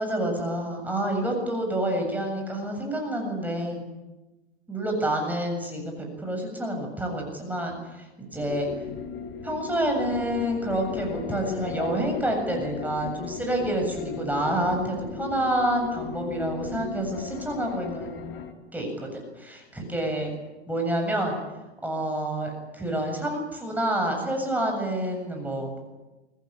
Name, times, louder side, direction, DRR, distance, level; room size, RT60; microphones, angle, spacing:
voice 1, 0.0-3.8 4.7-8.7 9.4-18.3 18.7-20.3 20.7-21.4 21.8-25.8, right 1 dB, 5° right, 2 dB, 7.5 m, -28 dB
sound 1, 8.4-18.5, left 7 dB, 35° left, 3.8 m, -36 dB
26.5 x 19.5 x 9.0 m, 1.1 s
hypercardioid pair, 125°, 34 cm